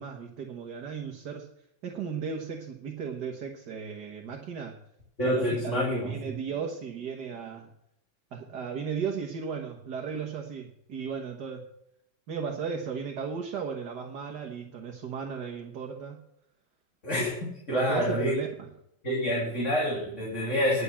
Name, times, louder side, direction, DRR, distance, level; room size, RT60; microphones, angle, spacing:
voice 1, 0.0-1.5 1.8-4.8 5.2-7.7 8.3-11.7 12.3-16.2 17.7-18.7, right 6 dB, 55° right, 1 dB, 1.7 m, -35 dB
voice 2, 5.2-6.1 17.0-18.3 19.0-20.8, equal, 35° left, -5 dB, 3.1 m, -27 dB
11.0 x 7.0 x 7.3 m, 0.77 s
omnidirectional pair, 2.4 m